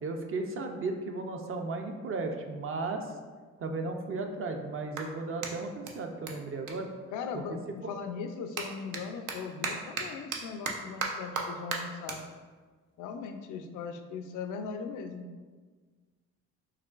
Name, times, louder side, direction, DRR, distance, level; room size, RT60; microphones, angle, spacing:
voice 1, 0.0-3.2 3.6-6.9 7.3-7.4 7.8-7.9, right 3 dB, 45° right, 4 dB, 0.5 m, -35 dB
Clapping, 4.1-7.6 7.9-14.6, right 4 dB, 85° right, 0.6 m, -40 dB
voice 2, 7.1-12.2 13.0-15.3, left 5 dB, 85° left, 6 dB, 0.5 m, -39 dB
4.8 x 3.0 x 2.4 m, 1.4 s
cardioid pair, 90°, 30 cm